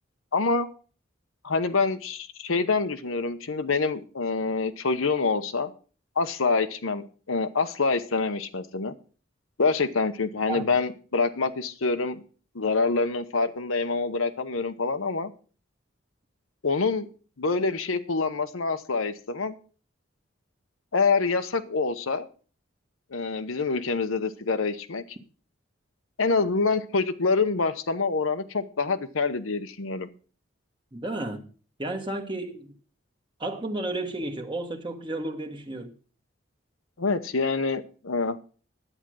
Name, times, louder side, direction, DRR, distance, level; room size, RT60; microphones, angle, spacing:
voice 1, 0.3-0.7 1.4-5.7 6.2-8.9 9.6-12.2 12.5-15.3 16.6-17.1 17.4-19.5 20.9-22.3 23.1-25.2 26.2-30.1 37.0-38.4, left 4 dB, 85° left, 0.9 m, -26 dB
voice 2, 30.9-31.5 31.8-32.7 33.4-35.9, right 2 dB, 25° right, 1.4 m, -32 dB
11.0 x 8.9 x 6.2 m
head